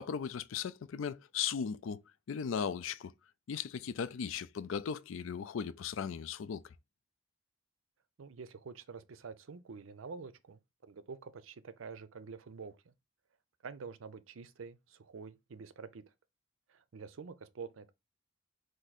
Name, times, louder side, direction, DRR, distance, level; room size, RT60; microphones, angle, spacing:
voice 1, 0.0-2.0 2.3-3.1 3.5-6.7, left 7 dB, 80° left, 0.4 m, -37 dB
voice 2, 8.2-12.9 13.6-16.0 16.7-17.9, right 5 dB, 85° right, 0.5 m, -47 dB
4.5 x 2.6 x 4.0 m
head